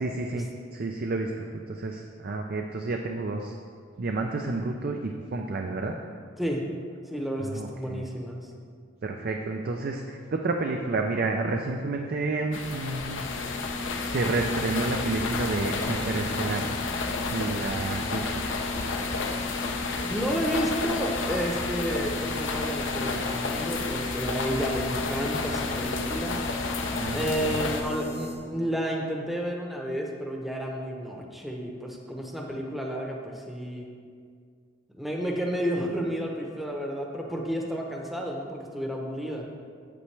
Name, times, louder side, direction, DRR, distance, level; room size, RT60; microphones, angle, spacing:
voice 1, 0.0-3.5 4.0-6.0 7.4-8.1 9.0-13.2 14.0-16.8 17.3-18.5 27.0-27.6, right 3 dB, 50° right, 3 dB, 0.4 m, -30 dB
voice 2, 7.1-8.5 19.9-26.4 27.1-33.9 34.9-39.4, equal, ahead, -1 dB, 0.8 m, -31 dB
sound 1, 12.5-27.8, left 3 dB, 75° left, 0.7 m, -31 dB
sound 2, 13.2-28.4, left 3 dB, 90° left, 1.6 m, -37 dB
8.4 x 7.9 x 3.3 m, 2.1 s
head